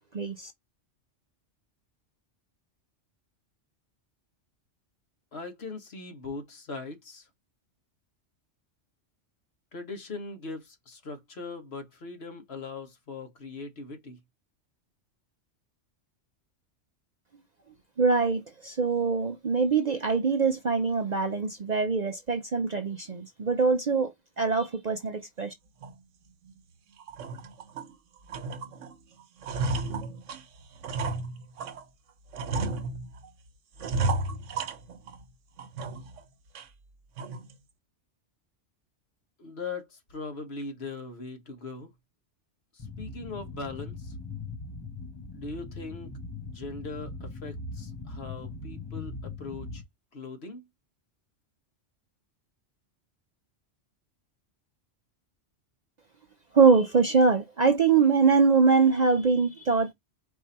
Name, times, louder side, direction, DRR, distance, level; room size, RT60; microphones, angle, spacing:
voice 1, 0.1-0.5 18.0-25.5 56.5-59.9, right 5 dB, 45° right, 0.6 m, -23 dB
voice 2, 5.3-7.3 9.7-14.2 39.4-41.9 42.7-44.1 45.3-46.1 46.4-49.8 50.1-50.6, left 3 dB, 60° left, 1.5 m, -40 dB
sound 1, 25.8-26.0 26.5-26.6 27.0-27.9 28.3-28.9 29.2-31.8 32.3-33.3 33.8-35.2 35.6-36.2 36.6-36.7 37.2-37.5, right 3 dB, 90° right, 1.1 m, -33 dB
sound 2, 42.8-49.8, left 3 dB, 25° left, 0.7 m, -40 dB
4.7 x 2.7 x 4.2 m
omnidirectional pair, 1.2 m